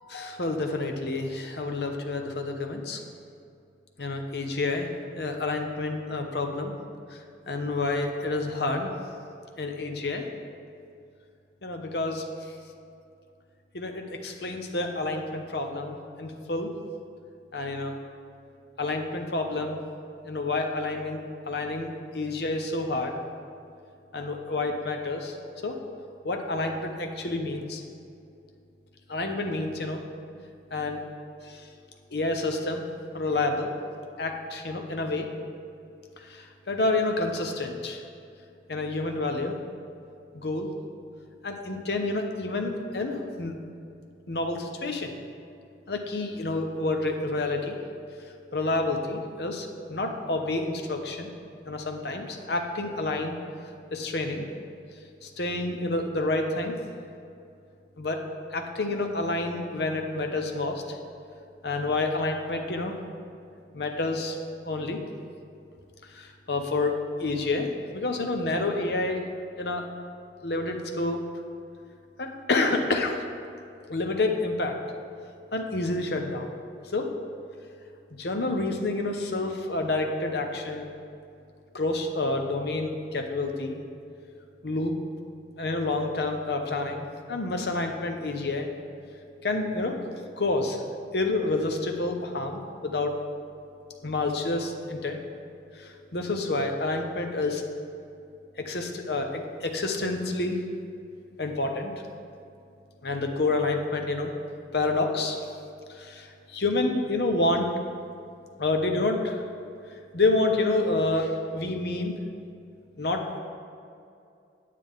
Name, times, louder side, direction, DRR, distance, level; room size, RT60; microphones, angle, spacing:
voice 1, 0.1-3.0 4.0-4.9 5.2-6.7 7.5-8.9 9.6-10.2 11.6-12.2 13.7-16.7 17.5-18.0 18.8-19.8 20.2-23.2 24.1-25.4 25.6-25.8 26.2-27.8 29.1-30.0 30.7-31.0 31.4-31.6 32.1-32.8 33.1-33.7 34.2-35.3 36.2-38.0 38.7-39.5 40.3-40.7 41.4-43.5 44.3-45.1 45.9-47.8 48.5-51.3 51.7-53.4 53.9-54.5 55.2-56.8 58.0-58.2 58.5-61.0 61.6-63.0 63.7-64.4 64.6-65.0 66.1-66.9 67.2-69.3 69.6-69.8 70.4-71.2 72.2-73.2 73.9-74.8 75.5-76.5 76.9-77.1 78.1-80.9 81.7-83.8 84.6-85.0 85.6-88.7 89.4-90.0 90.4-90.8 91.1-93.2 94.0-95.2 95.8-97.6 98.6-100.6 101.4-101.9 103.0-104.3 104.7-105.4 105.9-107.7 108.6-109.4 110.1-112.1 113.0-113.4, left 2 dB, 60° left, 4 dB, 0.8 m, -28 dB
9.3 x 8.3 x 3.7 m, 2.5 s
head